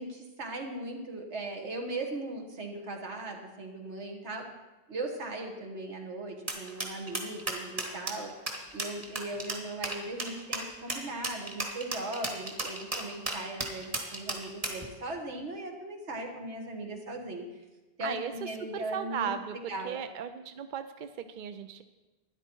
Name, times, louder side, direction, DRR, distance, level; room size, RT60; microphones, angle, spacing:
voice 1, 0.0-4.5 4.9-8.3 8.7-17.5 18.0-19.3 19.7-20.0, right 2 dB, 80° right, 2 dB, 1.7 m, -38 dB
sound 1, 6.5-14.8, right 2 dB, 30° right, 1.6 m, -34 dB
voice 2, 18.0-21.8, right 8 dB, 55° right, 9 dB, 0.6 m, -37 dB
12.5 x 10.0 x 4.5 m, 1.1 s
omnidirectional pair, 1.2 m